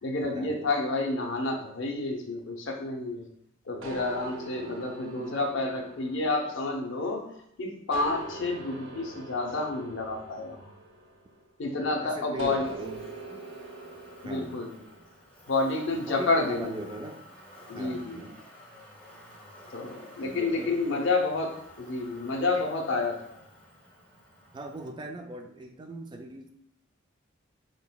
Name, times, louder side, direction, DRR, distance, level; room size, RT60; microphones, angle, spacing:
voice 1, 0.0-3.3 3.6-10.7 11.6-12.7 14.2-14.7 15.5-16.7 17.7-18.3 19.7-23.4, left 3 dB, 65° left, 2 dB, 0.7 m, -29 dB
voice 2, 3.7-4.1 4.5-4.8 11.8-13.0 13.3-13.4 14.2-14.6 15.9-17.2 17.7-18.3 20.2-21.1 22.5-22.6 24.5-26.5, right 1 dB, 20° right, 4 dB, 0.3 m, -40 dB
sound 1, 3.8-7.4 7.9-11.6 12.4-15.1, right 2 dB, 70° right, 0.6 m, -43 dB
Motor vehicle (road), 12.4-24.9, left 1 dB, 10° left, 1.1 m, -51 dB
4.5 x 3.8 x 2.2 m, 0.73 s
head